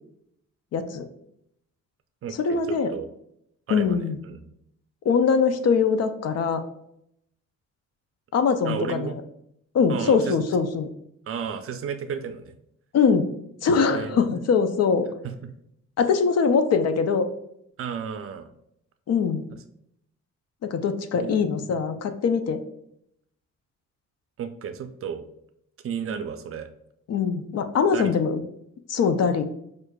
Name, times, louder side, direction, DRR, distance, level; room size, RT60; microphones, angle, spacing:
voice 1, 0.7-1.0 2.4-2.9 3.7-4.2 5.0-6.6 8.3-9.2 9.7-10.9 12.9-13.3 13.6-15.1 16.0-17.3 19.1-19.4 20.6-22.6 27.1-28.4 28.9-29.4, left 5 dB, 55° left, 9 dB, 0.5 m, -22 dB
voice 2, 2.2-3.1 3.7-4.5 8.6-9.1 9.9-10.4 11.3-12.6 13.9-14.4 15.2-15.5 17.8-18.5 21.1-21.8 24.4-25.2 25.8-26.7 27.9-28.2, right 7 dB, 45° right, 8 dB, 0.5 m, -33 dB
6.2 x 2.5 x 2.3 m, 0.74 s
cardioid pair, 90°, 30 cm